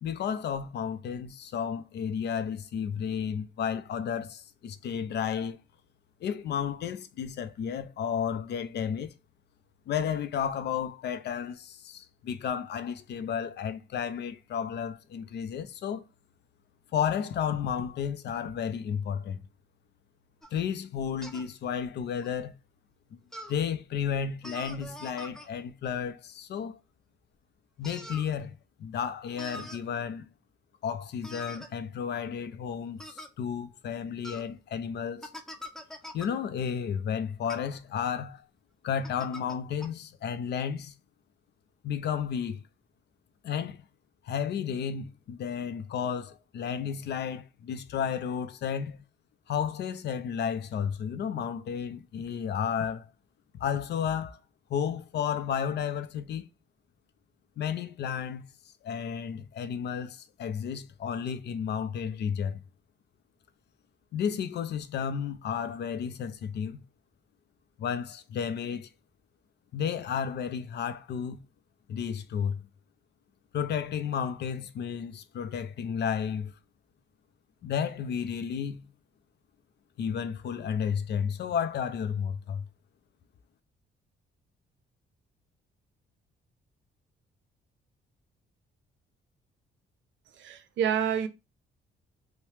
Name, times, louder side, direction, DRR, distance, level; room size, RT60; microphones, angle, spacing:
voice 1, 0.0-5.6 6.2-9.1 9.9-16.0 16.9-19.4 20.5-22.5 23.5-26.8 27.8-30.3 30.8-35.3 36.1-38.5 38.8-40.9 41.8-42.6 43.4-43.8 44.2-49.0 49.5-53.1 53.6-54.4 54.7-56.5 57.6-58.4 58.8-62.6 64.1-66.8 67.8-68.9 69.7-71.4 71.9-72.6 73.5-76.5 77.6-78.9 80.0-82.7, left 7 dB, 60° left, 0.4 m, -32 dB
sound 1, 20.4-20.6 21.2-21.5 22.2-22.3 23.3-23.6 24.4-25.5 27.8-28.3 29.4-29.8 31.2-31.7 33.0-33.3 34.2-34.5 35.2-36.3 37.4-37.6 39.0-39.6 39.8-39.9, equal, ahead, 0.5 m, -43 dB
voice 2, 90.4-91.3, right 8 dB, 70° right, 0.5 m, -28 dB
2.8 x 2.1 x 3.1 m
cardioid pair, 90°, 20 cm